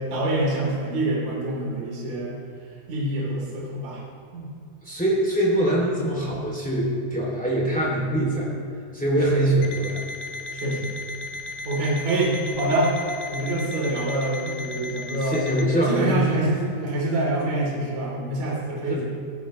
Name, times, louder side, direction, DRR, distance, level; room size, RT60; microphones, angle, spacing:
voice 1, 0.0-2.4 2.9-4.0 4.3-4.5 9.3-9.4 10.5-11.0 11.7-12.9 13.3-15.4 15.9-19.0, right 1 dB, 40° right, -4 dB, 4.0 m, -26 dB
voice 2, 4.8-8.5 8.9-10.0 15.2-16.4 18.9-19.0, right 1 dB, 10° left, -4 dB, 0.5 m, -23 dB
Alarm, 9.6-15.7, left 3 dB, 75° left, 3.0 m, -36 dB
16.5 x 15.5 x 3.1 m, 2.4 s
omnidirectional pair, 5.3 m